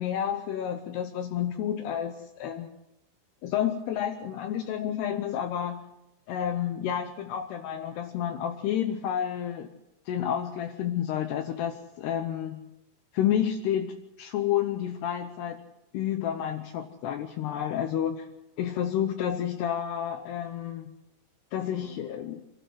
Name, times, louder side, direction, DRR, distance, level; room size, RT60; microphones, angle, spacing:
voice 1, 0.0-2.7 3.4-5.8 6.3-9.7 10.1-12.6 13.1-15.6 15.9-18.3 18.6-20.9 21.5-22.4, left 10 dB, 80° left, 7 dB, 2.4 m, -30 dB
26.5 x 12.5 x 7.9 m, 0.91 s
omnidirectional pair, 6.0 m